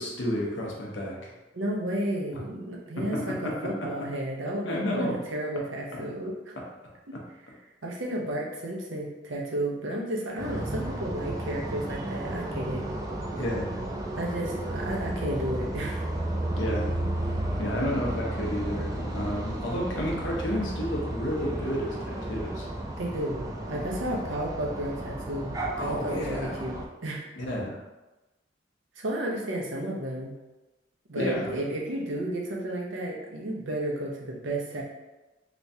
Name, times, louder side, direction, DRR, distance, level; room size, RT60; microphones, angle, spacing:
voice 1, 0.0-1.3 3.0-3.9 4.6-5.2 13.3-13.7 16.6-16.9 17.6-22.7 23.7-23.8 25.8-26.6 27.4-27.8 31.2-31.6, equal, 80° left, -2 dB, 0.8 m, -31 dB
voice 2, 1.5-6.6 7.1-7.2 7.8-12.9 14.2-16.0 23.0-25.5 25.8-27.2 29.0-30.3 31.1-34.8, right 1 dB, 90° right, -2 dB, 0.7 m, -32 dB
sound 1, 10.4-26.8, right 1 dB, 20° right, 0.4 m, -33 dB
3.4 x 3.0 x 2.7 m, 1.1 s
head